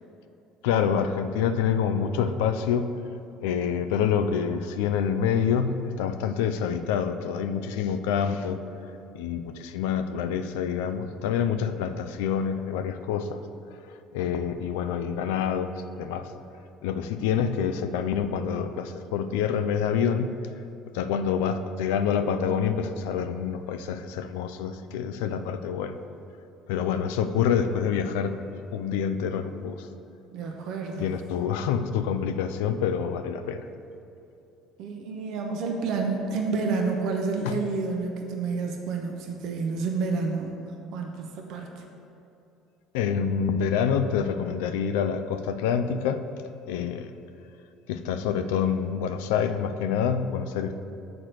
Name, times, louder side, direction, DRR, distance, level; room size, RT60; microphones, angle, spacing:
voice 1, 0.6-3.0 3.4-8.6 9.1-13.4 13.7-16.3 16.8-20.4 20.9-26.0 26.7-28.4 28.7-29.9 31.0-33.6 37.4-37.6 42.9-46.3 46.7-47.1 47.9-50.8, left 7 dB, 75° left, 9 dB, 0.4 m, -27 dB
voice 2, 30.3-31.1 34.8-40.6 40.9-41.8, right 4 dB, 65° right, 2 dB, 0.7 m, -29 dB
6.5 x 4.3 x 6.4 m, 2.9 s
hypercardioid pair, 65°, 0 cm